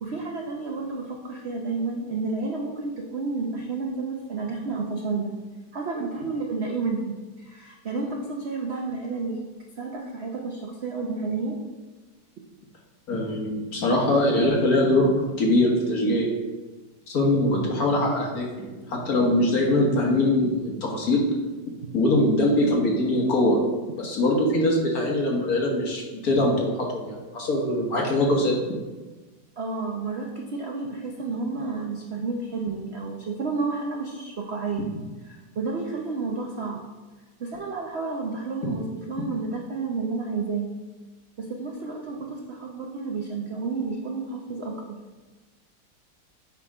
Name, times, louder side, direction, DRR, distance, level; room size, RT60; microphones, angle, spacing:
voice 1, 0.0-5.4 5.7-7.1 7.4-9.4 9.8-11.6 21.8-21.9 29.6-34.8 35.3-36.8 37.4-40.7 41.4-44.8, right 4 dB, 75° right, 1 dB, 0.5 m, -31 dB
voice 2, 13.1-16.3 17.1-21.2 21.9-23.6 24.0-28.6, left 1 dB, 50° left, -1 dB, 1.6 m, -22 dB
8.6 x 3.7 x 4.8 m, 1.2 s
omnidirectional pair, 2.1 m